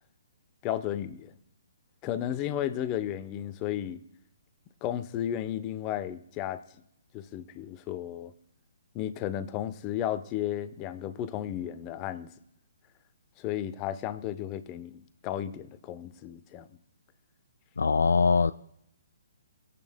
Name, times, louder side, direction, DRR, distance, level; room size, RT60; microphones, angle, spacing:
voice 1, 0.6-1.3 2.0-4.0 4.8-6.6 7.1-8.3 8.9-12.3 13.4-16.7, left 11 dB, 25° left, 0.8 m, -33 dB
voice 2, 17.8-18.5, left 5 dB, 70° left, 0.3 m, -22 dB
22.0 x 8.5 x 2.2 m
figure-of-eight pair, 130°, 0 cm